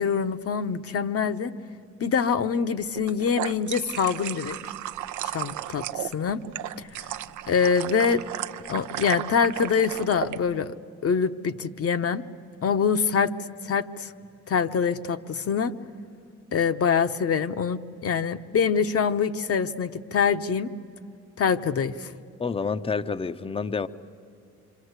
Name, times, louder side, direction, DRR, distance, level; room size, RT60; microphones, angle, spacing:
voice 1, 0.0-1.5 2.0-4.6 5.2-6.4 6.8-7.1 7.5-8.2 8.7-10.7 11.0-12.2 12.6-13.3 13.6-14.1 14.5-15.7 16.5-20.7 21.4-22.1, left 6 dB, 50° left, 9 dB, 1.0 m, -25 dB
sound 1, 2.9-10.4, right 12 dB, 75° right, 0.6 m, -34 dB
voice 2, 22.4-23.9, left 5 dB, 20° left, 12 dB, 0.7 m, -28 dB
26.5 x 25.0 x 8.2 m, 2.4 s
cardioid pair, 90°, 30 cm